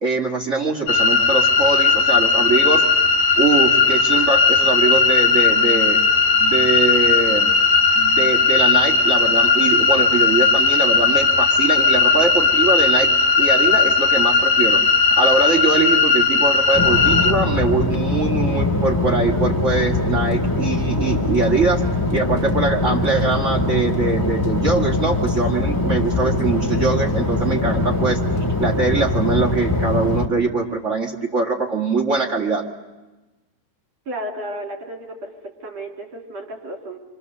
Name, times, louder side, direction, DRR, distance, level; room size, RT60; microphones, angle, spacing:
voice 1, 0.0-2.8 3.4-6.0 6.4-7.5 8.0-13.1 13.4-14.8 15.1-28.2 28.6-32.6, right 3 dB, 30° right, -1 dB, 1.7 m, -22 dB
sound 1, 0.9-17.3, left 4 dB, 85° left, 3.7 m, -17 dB
sound 2, 16.7-30.3, left 2 dB, 10° left, 1.1 m, -22 dB
voice 2, 34.1-35.3 35.6-37.0, right 1 dB, 55° right, 1 dB, 3.8 m, -32 dB
29.5 x 25.0 x 6.7 m, 1.1 s
omnidirectional pair, 3.7 m